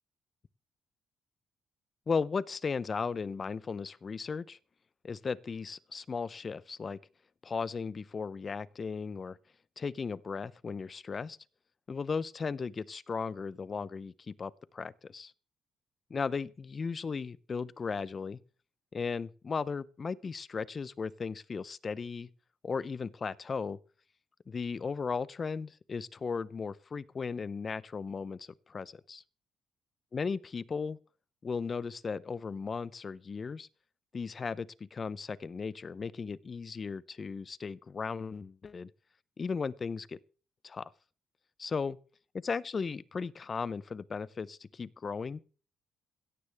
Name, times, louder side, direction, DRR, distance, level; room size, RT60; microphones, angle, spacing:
voice 1, 2.1-4.6 5.0-7.0 7.4-9.4 9.8-11.4 11.9-15.3 16.1-18.4 18.9-22.3 22.6-23.8 24.5-29.2 30.1-31.0 31.4-33.7 34.1-38.9 39.4-40.2 40.6-40.9 41.6-42.0 42.3-45.4, left 5 dB, 40° left, 0.7 m, -36 dB
17.0 x 13.0 x 3.5 m
cardioid pair, 90°, 0 cm